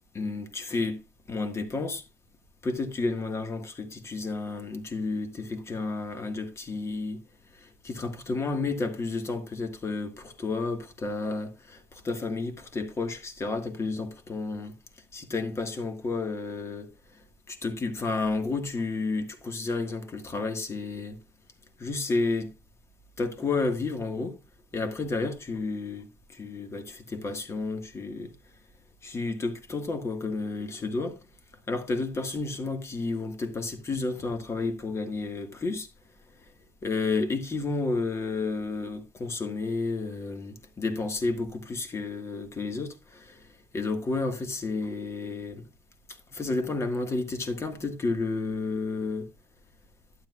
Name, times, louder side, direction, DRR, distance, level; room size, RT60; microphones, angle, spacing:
voice 1, 0.1-1.0 1.3-2.0 2.6-7.2 7.5-14.7 15.1-16.9 17.5-21.2 21.8-22.5 23.2-24.4 24.7-28.3 29.0-31.2 31.7-35.9 36.8-43.5 43.7-45.6 46.3-49.3, left 3 dB, 25° left, 1.7 m, -31 dB
12.0 x 9.6 x 2.4 m
cardioid pair, 140°, 11 cm